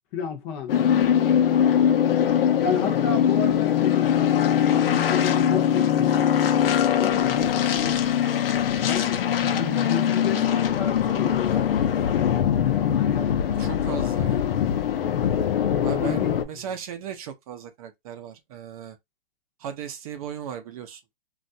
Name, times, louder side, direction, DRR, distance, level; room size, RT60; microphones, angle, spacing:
voice 1, 0.1-0.8 2.6-6.3 6.9-8.1 8.8-11.8 12.1-14.0 16.0-16.7, left 6 dB, 25° left, 0.7 m, -32 dB
sound 1, 0.7-16.4, left 9 dB, 70° left, 0.7 m, -22 dB
voice 2, 13.6-14.7 15.8-19.0 19.6-21.1, right 8 dB, 35° right, 0.6 m, -37 dB
3.1 x 2.4 x 2.7 m
hypercardioid pair, 150°, 30 cm